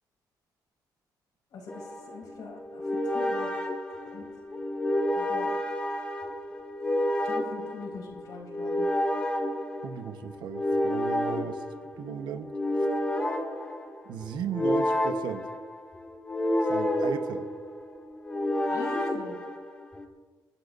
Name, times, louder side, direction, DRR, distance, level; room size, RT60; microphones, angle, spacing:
voice 1, 1.5-3.5 3.9-4.3 5.1-5.5 7.2-8.9 18.7-19.4, left 3 dB, 65° left, -2 dB, 4.6 m, -42 dB
sound 1, 1.7-20.0, left 1 dB, 15° left, 1.8 m, -30 dB
voice 2, 9.8-11.6 12.0-12.9 14.0-15.5 16.7-17.5, right 8 dB, 80° right, 8 dB, 1.1 m, -36 dB
28.5 x 11.5 x 2.6 m, 1.2 s
cardioid pair, 175°, 7 cm